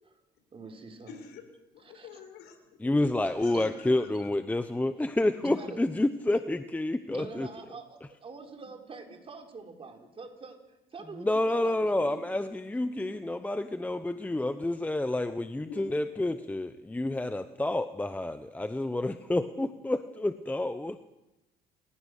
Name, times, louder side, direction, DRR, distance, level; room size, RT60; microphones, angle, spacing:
voice 1, 0.5-1.2 1.8-2.2 3.5-3.8 5.4-5.8 7.1-10.6 10.9-12.2, right 4 dB, 35° right, 3 dB, 4.0 m, -44 dB
voice 2, 1.1-1.4 1.7-3.0 3.3-4.3 12.0-12.3 13.1-13.2 13.4-13.7 15.7-16.4, left 5 dB, 90° left, 7 dB, 4.3 m, -48 dB
voice 3, 2.8-7.5 11.2-21.0, left 2 dB, 10° left, 10 dB, 0.8 m, -29 dB
29.5 x 15.5 x 6.6 m, 0.97 s
cardioid pair, 110°, 17 cm